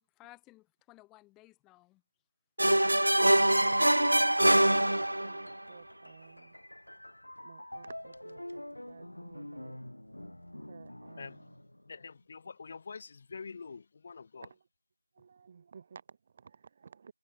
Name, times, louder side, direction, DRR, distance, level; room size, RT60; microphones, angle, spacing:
voice 1, 0.0-2.0, left 20 dB, 5° left, 4.6 m, -57 dB
sound 1, 2.6-5.5, right 1 dB, 80° right, 0.4 m, -24 dB
voice 2, 3.2-6.6 7.4-9.8 10.7-11.6 14.4-14.7 15.1-17.1, right 6 dB, 15° right, 1.8 m, -53 dB
sound 2, 5.5-12.2, left 1 dB, 90° left, 2.0 m, -47 dB
voice 3, 11.9-14.5, left 5 dB, 20° left, 2.0 m, -45 dB
figure-of-eight pair, 175°, 0 cm